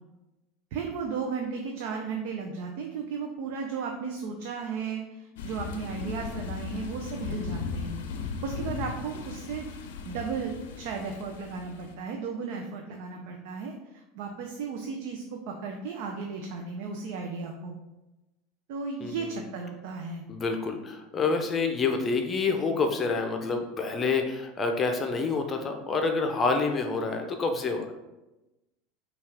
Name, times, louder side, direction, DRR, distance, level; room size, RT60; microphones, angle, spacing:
voice 1, 0.7-7.9 8.4-9.7 10.0-17.7 18.7-20.2, right 5 dB, 65° right, 2 dB, 0.5 m, -35 dB
sound 1, 5.4-11.9, left 5 dB, 80° left, 0.5 m, -37 dB
voice 2, 19.0-19.3 20.3-27.9, left 4 dB, 30° left, 4 dB, 0.6 m, -28 dB
5.3 x 2.4 x 3.4 m, 1.0 s
hypercardioid pair, 90°, 0 cm